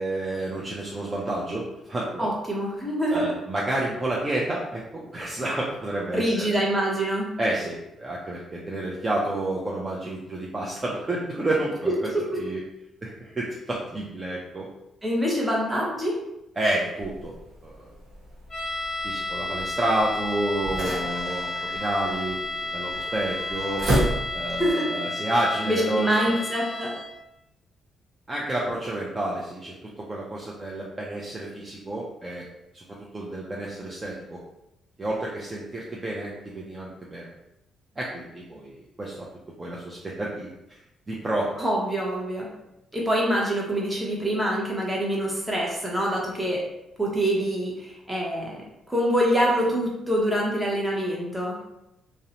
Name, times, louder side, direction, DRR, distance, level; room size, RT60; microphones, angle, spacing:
voice 1, 0.0-2.3 3.1-6.6 7.4-11.9 12.4-12.6 13.0-14.7 16.6-17.3 17.6-17.9 19.0-23.9 24.3-26.4 28.3-32.4 32.7-32.8 33.1-34.4 35.0-37.3 38.0-39.3 39.6-40.5 41.1-41.5, right 1 dB, 25° right, -4 dB, 0.4 m, -30 dB
voice 2, 2.2-3.2 6.1-7.3 12.1-12.2 15.0-16.1 24.6-24.9 25.6-26.9 41.6-42.5 42.9-46.6 47.0-51.6, equal, 10° right, -4 dB, 0.8 m, -25 dB
sound 1, 17.0-24.7, right 1 dB, 55° right, 1.0 m, -32 dB
sound 2, 18.5-27.2, left 2 dB, 20° left, 1.2 m, -32 dB
2.5 x 2.0 x 2.8 m, 0.88 s
cardioid pair, 90°, 0 cm